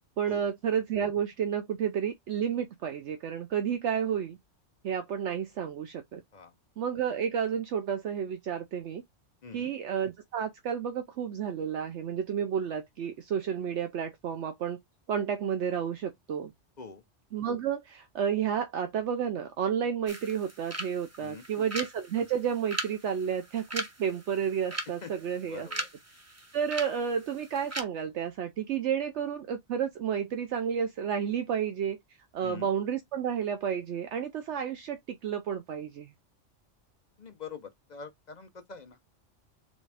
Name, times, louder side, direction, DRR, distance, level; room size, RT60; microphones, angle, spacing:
voice 1, 0.2-4.4 4.8-6.2 6.8-9.0 9.5-14.8 15.1-16.5 17.3-25.7 26.5-32.0 32.3-36.1, right 8 dB, 70° right, 0.9 m, -31 dB
voice 2, 9.4-9.7 16.8-17.0 21.2-21.4 25.0-25.1 25.5-25.9 32.4-32.7 37.2-39.0, left 5 dB, 45° left, 0.7 m, -44 dB
sound 1, 20.1-27.8, right 1 dB, 15° right, 0.7 m, -40 dB
4.2 x 3.6 x 3.3 m
omnidirectional pair, 1.2 m